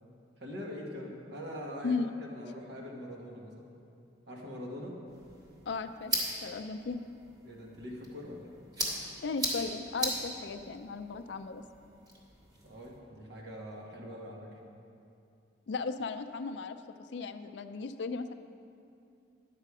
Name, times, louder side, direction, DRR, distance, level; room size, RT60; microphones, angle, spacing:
voice 1, 0.4-3.8 4.3-5.0 7.4-8.5 12.6-14.6, left 1 dB, 65° right, -1 dB, 1.5 m, -43 dB
voice 2, 1.8-2.2 5.7-6.1 6.4-7.0 9.2-11.6 15.7-16.8 17.1-18.3, left 4 dB, 65° left, 9 dB, 0.4 m, -36 dB
sound 1, 5.1-13.0, right 1 dB, 25° right, 1.6 m, -39 dB
10.0 x 7.5 x 4.8 m, 2.5 s
head